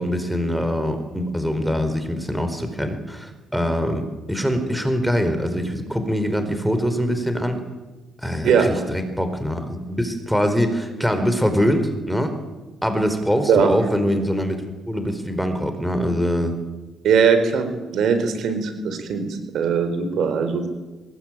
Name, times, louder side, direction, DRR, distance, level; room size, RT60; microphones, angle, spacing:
voice 1, 0.0-7.6 8.2-12.4 12.8-16.5, equal, ahead, 7 dB, 4.6 m, -23 dB
voice 2, 8.4-8.8 13.5-13.7 17.0-17.7 17.9-20.7, right 6 dB, 75° right, 9 dB, 4.5 m, -20 dB
23.5 x 20.0 x 9.1 m, 1.2 s
cardioid pair, 90°, 0 cm